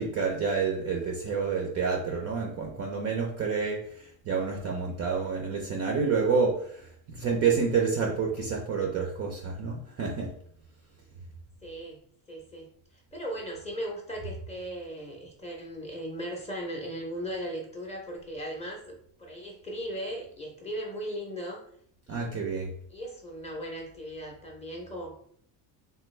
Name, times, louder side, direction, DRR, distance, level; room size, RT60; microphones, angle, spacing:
voice 1, 0.0-10.3 22.1-22.7, right 5 dB, 35° right, 0 dB, 0.4 m, -29 dB
voice 2, 11.6-12.0 12.3-12.7 13.1-21.6 22.1-22.6 22.9-25.2, equal, 15° left, -1 dB, 0.5 m, -37 dB
3.3 x 2.3 x 3.1 m, 0.66 s
cardioid pair, 145°, 49 cm